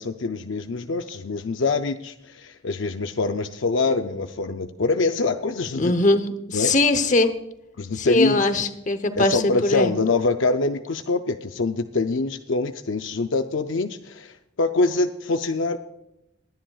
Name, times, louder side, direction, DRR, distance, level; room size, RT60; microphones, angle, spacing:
voice 1, 0.0-5.9 6.5-6.7 7.8-8.4 9.2-15.8, left 3 dB, 65° left, 7 dB, 0.6 m, -24 dB
voice 2, 5.8-7.3 7.9-9.9, left 2 dB, 35° left, 10 dB, 0.9 m, -21 dB
21.0 x 10.5 x 2.4 m, 0.85 s
head